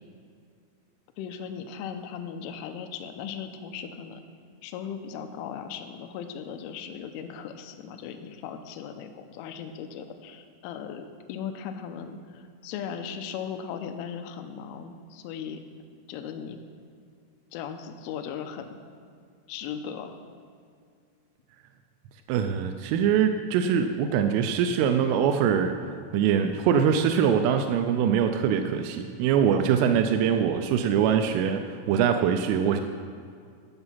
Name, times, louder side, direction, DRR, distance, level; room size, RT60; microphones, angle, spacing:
voice 1, 1.2-4.2 4.6-15.6 16.1-16.6 17.5-18.8 19.5-20.1 29.7-30.1, left 7 dB, 85° left, 7 dB, 3.1 m, -38 dB
voice 2, 22.3-25.8 26.1-32.8, right 8 dB, 85° right, 7 dB, 3.1 m, -23 dB
13.0 x 7.0 x 5.7 m, 2.3 s
omnidirectional pair, 5.6 m